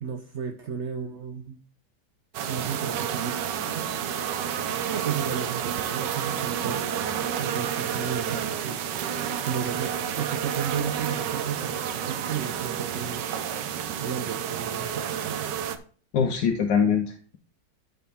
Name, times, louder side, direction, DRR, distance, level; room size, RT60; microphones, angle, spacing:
voice 1, 0.0-1.6 2.5-3.5 3.8-3.9 4.9-7.1 7.4-13.3 14.0-15.5, right 7 dB, 65° right, 0.7 m, -34 dB
sound 1, 2.3-15.8, right 8 dB, 85° right, 1.4 m, -30 dB
voice 2, 16.1-17.4, left 7 dB, 85° left, 1.5 m, -23 dB
13.0 x 4.9 x 3.5 m
omnidirectional pair, 1.9 m